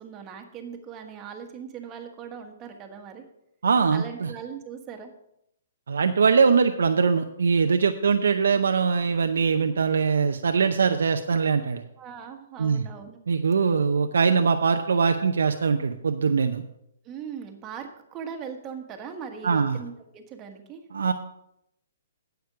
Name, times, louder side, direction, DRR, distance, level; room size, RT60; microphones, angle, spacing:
voice 1, 0.0-3.2 3.9-5.1 12.0-13.2 17.0-20.8, right 7 dB, 20° right, 4 dB, 1.4 m, -39 dB
voice 2, 3.6-4.3 5.9-11.8 12.6-12.8 13.3-16.6 19.4-19.8 20.9-21.1, right 5 dB, 85° right, 6 dB, 0.6 m, -22 dB
9.6 x 8.0 x 4.9 m, 0.78 s
hypercardioid pair, 150°, 0 cm